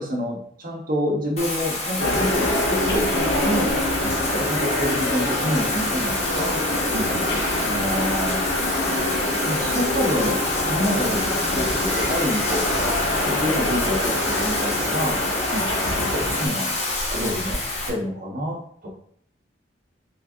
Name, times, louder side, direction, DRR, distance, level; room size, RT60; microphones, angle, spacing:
voice 1, 0.0-3.8 4.3-6.6 7.6-8.4 9.4-10.4 10.7-15.2 16.1-16.8 17.1-17.6 17.9-18.9, equal, 50° right, -2 dB, 1.3 m, -27 dB
Bathtub (filling or washing), 1.4-17.9, left 2 dB, 35° left, 1.2 m, -28 dB
sound 1, 2.0-16.5, left 1 dB, 85° left, 1.0 m, -25 dB
voice 2, 6.9-7.7 15.5-15.7 17.2-17.5, right 1 dB, 70° right, -1 dB, 0.6 m, -33 dB
4.5 x 2.6 x 3.6 m, 0.63 s
head